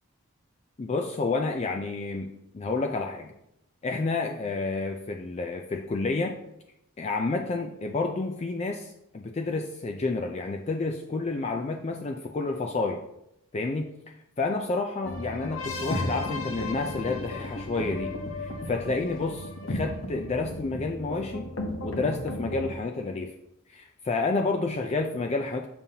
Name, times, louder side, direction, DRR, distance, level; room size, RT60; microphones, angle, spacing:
voice 1, 0.8-2.3 2.5-3.3 3.8-6.4 7.0-13.0 13.5-13.9 14.4-18.1 18.4-21.5 21.8-23.3 23.7-25.7, left 3 dB, 30° left, 3 dB, 0.4 m, -30 dB
sound 1, 15.0-22.7, left 2 dB, 65° left, 0.9 m, -34 dB
7.1 x 5.4 x 2.8 m, 0.80 s
head